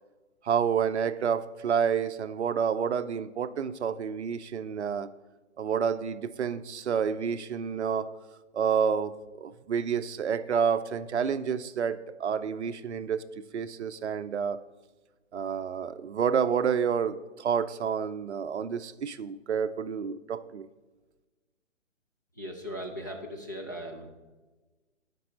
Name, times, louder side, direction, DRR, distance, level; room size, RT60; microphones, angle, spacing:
voice 1, 0.4-5.1 5.6-8.1 8.5-13.3 13.5-14.6 15.3-20.7, right 7 dB, 60° right, 13 dB, 0.5 m, -29 dB
voice 2, 22.4-24.1, equal, 15° left, -1 dB, 0.4 m, -38 dB
11.5 x 5.3 x 4.0 m, 1.2 s
figure-of-eight pair, 140°, 38 cm